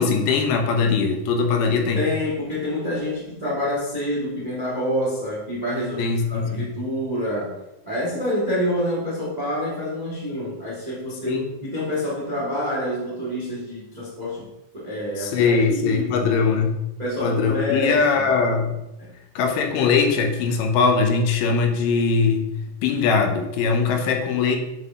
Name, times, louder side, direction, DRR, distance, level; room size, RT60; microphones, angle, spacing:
voice 1, 0.0-2.0 6.0-6.7 11.3-11.5 15.2-16.8 17.2-18.7 19.4-22.5 22.8-24.6, left 5 dB, 85° left, 4 dB, 2.4 m, -21 dB
voice 2, 1.9-7.6 7.8-14.5 14.7-16.3 17.0-18.2 19.0-19.1, equal, 30° right, -6 dB, 0.7 m, -27 dB
7.7 x 3.8 x 3.6 m, 0.94 s
omnidirectional pair, 3.8 m